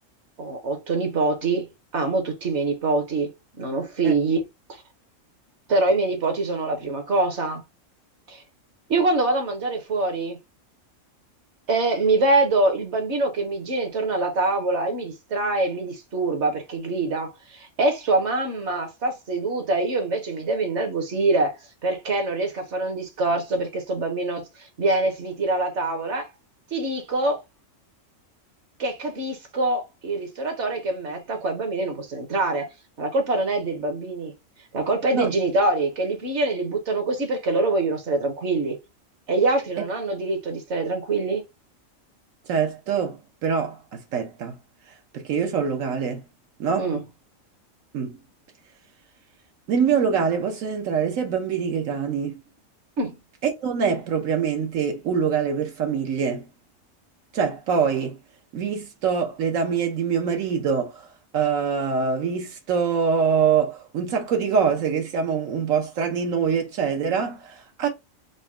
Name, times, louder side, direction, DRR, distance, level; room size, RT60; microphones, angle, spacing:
voice 1, 0.4-1.7 1.9-3.3 3.6-4.4 4.7-4.8 5.7-7.6 8.3-8.4 8.9-10.4 11.7-21.5 21.8-26.3 26.7-27.4 28.8-32.7 33.0-34.3 34.7-38.8 39.3-41.4 46.8-47.0 53.0-53.1, right 2 dB, 60° right, 1.2 m, -24 dB
voice 2, 42.5-44.6 44.9-46.2 46.6-46.9 47.9-48.2 49.7-52.4 53.4-56.5 57.3-58.2 58.5-61.1 61.3-67.9, right 6 dB, 80° right, 1.2 m, -24 dB
4.0 x 2.2 x 3.4 m
omnidirectional pair, 1.4 m